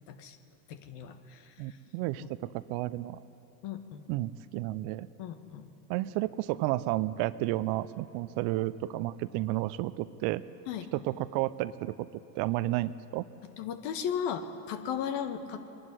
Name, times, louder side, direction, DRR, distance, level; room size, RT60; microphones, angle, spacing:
voice 1, 0.7-1.5 2.2-2.3 3.6-4.0 5.2-5.7 10.7-10.9 13.4-15.7, left 8 dB, 55° left, 8 dB, 1.8 m, -36 dB
voice 2, 1.6-3.2 4.1-5.1 5.9-10.4 11.0-12.1 12.3-13.3, right 16 dB, 55° right, 16 dB, 0.7 m, -32 dB
23.5 x 11.5 x 9.9 m, 2.8 s
hypercardioid pair, 80°, 49 cm